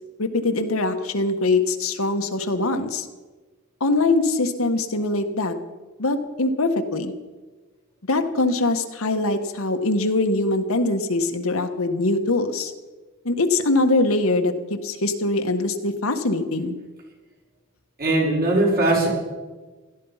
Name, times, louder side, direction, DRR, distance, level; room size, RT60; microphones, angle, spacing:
voice 1, 0.2-3.1 3.8-5.6 6.0-7.1 8.1-12.7 13.2-16.8, left 2 dB, 75° left, 7 dB, 1.4 m, -22 dB
voice 2, 18.0-19.1, right 2 dB, 45° right, -2 dB, 5.5 m, -19 dB
17.0 x 13.5 x 5.7 m, 1.3 s
head